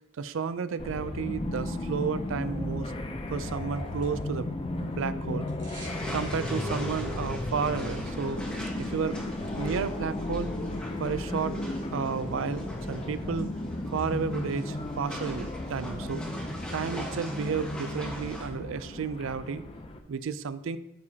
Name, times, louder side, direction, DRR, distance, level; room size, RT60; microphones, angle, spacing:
voice 1, 0.2-2.9 3.3-4.5 4.8-5.5 6.1-8.4 8.8-9.2 9.6-10.5 11.0-11.6 11.9-13.5 13.9-16.2 16.7-19.6 20.1-20.8, right 5 dB, 75° right, 14 dB, 0.4 m, -32 dB
sound 1, 0.8-20.0, left 1 dB, 25° left, 0.5 m, -34 dB
sound 2, 3.3-4.5 4.8-6.1 6.4-6.5, right 4 dB, 55° right, 3.1 m, -50 dB
sound 3, 5.8-18.5, equal, 5° left, 1.2 m, -42 dB
12.5 x 4.8 x 2.8 m, 0.88 s
head